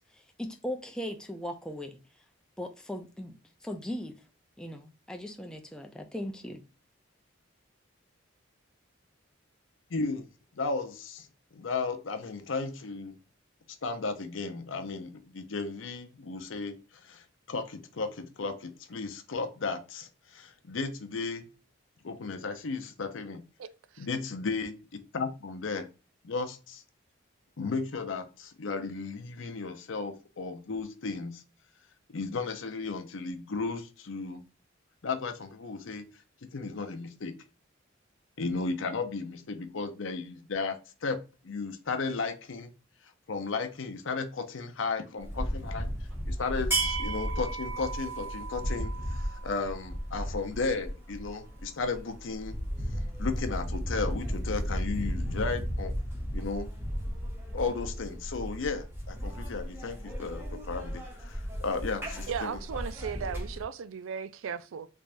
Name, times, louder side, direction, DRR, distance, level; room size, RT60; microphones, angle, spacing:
voice 1, 0.4-2.0 2.6-3.4 3.6-4.1 4.6-6.6, left 1 dB, 5° left, 0.4 m, -38 dB
voice 2, 9.9-10.3 10.6-11.3 11.5-13.2 13.8-16.8 17.0-21.5 22.0-23.4 24.0-24.7 25.1-25.9 26.2-26.8 27.6-31.4 32.1-34.4 35.0-36.0 36.5-37.3 38.4-41.2 41.4-42.7 43.3-45.9 46.3-52.6 53.2-55.9 56.3-56.7 57.5-62.6, left 4 dB, 75° left, 0.6 m, -34 dB
voice 3, 23.6-24.1 62.3-64.9, right 7 dB, 80° right, 0.4 m, -36 dB
sound 1, 45.2-63.6, right 1 dB, 10° right, 1.0 m, -34 dB
3.4 x 3.4 x 2.5 m
head